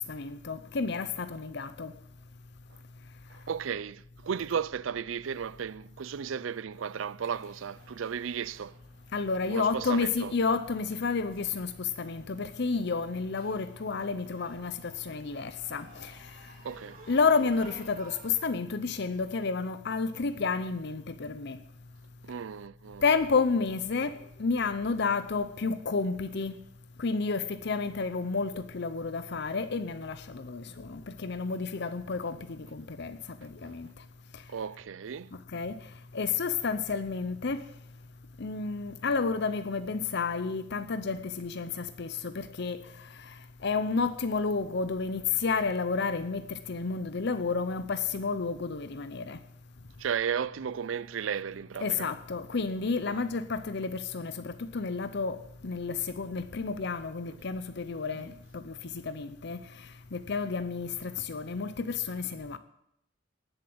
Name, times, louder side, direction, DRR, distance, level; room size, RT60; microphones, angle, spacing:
voice 1, 0.1-1.9 9.1-16.2 17.1-21.6 23.0-26.5 27.0-33.9 35.5-35.8 36.1-37.6 38.4-43.3 43.6-49.4 51.8-62.6, left 4 dB, 60° left, 0.7 m, -31 dB
voice 2, 3.3-8.8 9.5-10.3 16.6-17.0 22.2-23.0 34.5-35.3 50.0-52.1 53.1-53.2 58.1-58.2, right 7 dB, 85° right, 0.5 m, -34 dB
sound 1, 7.2-18.3, right 2 dB, 45° right, 3.2 m, -55 dB
19.0 x 7.3 x 7.8 m
head